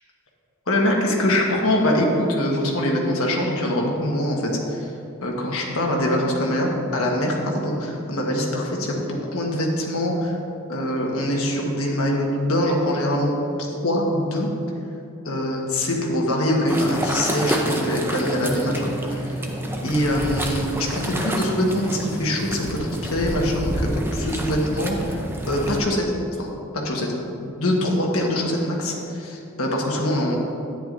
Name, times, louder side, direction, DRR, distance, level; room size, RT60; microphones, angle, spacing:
voice 1, 0.7-4.9 5.2-10.4 10.7-13.4 13.8-14.5 15.2-19.4 19.8-25.2 25.5-26.0 26.4-26.5 26.7-27.1 27.4-30.4, left 1 dB, 70° left, -1 dB, 1.4 m, -23 dB
sound 1, 16.7-25.8, right 1 dB, 10° right, 0.5 m, -28 dB
10.5 x 9.1 x 2.6 m, 2.8 s
head